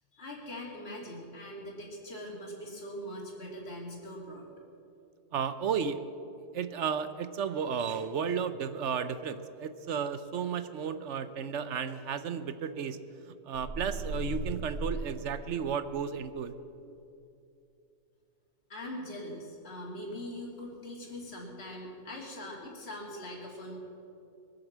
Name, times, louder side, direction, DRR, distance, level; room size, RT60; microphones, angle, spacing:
voice 1, 0.1-4.4 18.7-23.8, left 1 dB, 40° left, -2 dB, 2.8 m, -42 dB
voice 2, 5.3-6.0 6.5-13.0 13.4-16.5, right 7 dB, 60° right, 12 dB, 0.8 m, -33 dB
sound 1, 13.5-15.9, right 1 dB, 35° right, 2.0 m, -37 dB
22.0 x 8.0 x 7.3 m, 2.7 s
omnidirectional pair, 1.6 m